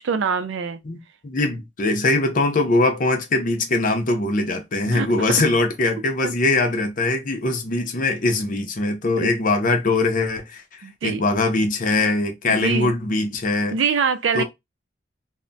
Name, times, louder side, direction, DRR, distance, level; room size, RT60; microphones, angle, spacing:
voice 1, 0.0-0.8 4.9-5.4 6.2-6.3 9.2-9.3 10.8-11.2 12.5-12.9 13.7-14.4, right 5 dB, 90° right, 0.4 m, -24 dB
voice 2, 0.8-13.8 14.3-14.4, left 2 dB, 45° left, 0.6 m, -22 dB
2.2 x 2.1 x 3.8 m
head